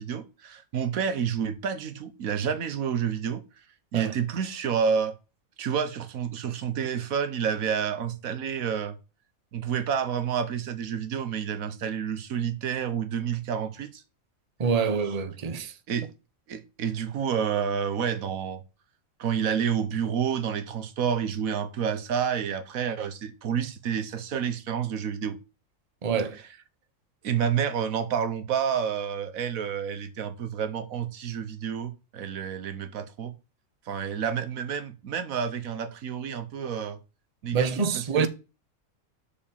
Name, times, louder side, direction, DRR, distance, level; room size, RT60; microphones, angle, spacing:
voice 1, 0.0-3.4 3.9-5.1 5.6-9.0 9.5-14.0 15.9-16.1 16.5-18.6 19.2-25.4 27.2-33.3 33.9-37.0 37.4-38.3, right 7 dB, 85° right, 1.4 m, -29 dB
voice 2, 14.6-15.7 26.0-26.4 37.5-38.3, right 5 dB, 30° right, 0.9 m, -26 dB
6.7 x 5.4 x 7.1 m
omnidirectional pair, 1.4 m